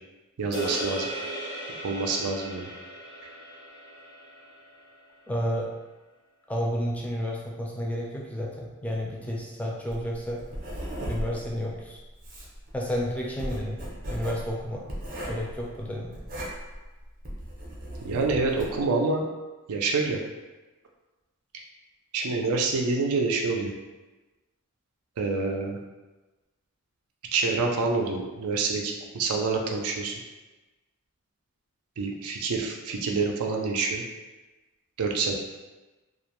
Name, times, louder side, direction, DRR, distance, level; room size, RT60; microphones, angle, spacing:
voice 1, 0.4-1.1 1.8-2.7 18.0-19.2 19.7-20.2 22.1-23.7 25.2-25.8 27.3-30.1 32.0-34.0 35.0-35.3, right 3 dB, 85° right, 1 dB, 0.4 m, -27 dB
sound 1, 0.5-5.0, right 1 dB, 85° left, 0.9 m, -37 dB
voice 2, 5.3-5.7 6.5-10.4 11.1-12.0 12.7-13.8 14.1-14.8 15.2-16.1, equal, 5° left, -3 dB, 0.4 m, -31 dB
Writing, 9.9-18.8, equal, 40° right, 0.6 m, -37 dB
2.3 x 2.1 x 2.9 m, 1.2 s
head